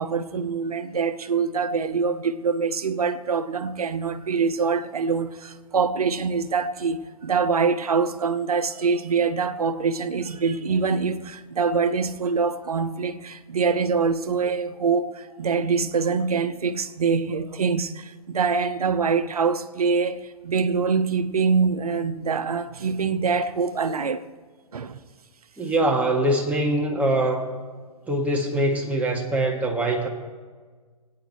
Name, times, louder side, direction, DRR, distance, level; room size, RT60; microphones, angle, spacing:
voice 1, 0.0-24.2 24.7-25.0, right 5 dB, 85° right, 0.9 m, -24 dB
voice 2, 25.6-27.4 28.1-30.1, right 1 dB, 5° right, 1.6 m, -23 dB
22.5 x 9.5 x 3.1 m
hypercardioid pair, 125°, 19 cm